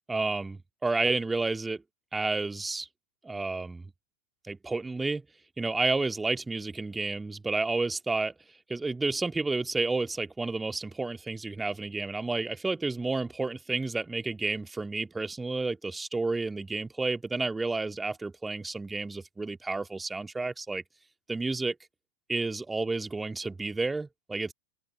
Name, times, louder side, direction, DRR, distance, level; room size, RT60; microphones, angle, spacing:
voice 1, 0.1-1.8 2.1-2.9 3.2-3.9 4.4-5.2 5.6-8.3 8.7-20.8 21.3-21.8 22.3-24.5, right 3 dB, 10° right, 2.4 m, -31 dB
open air
figure-of-eight pair, 90°, 0 cm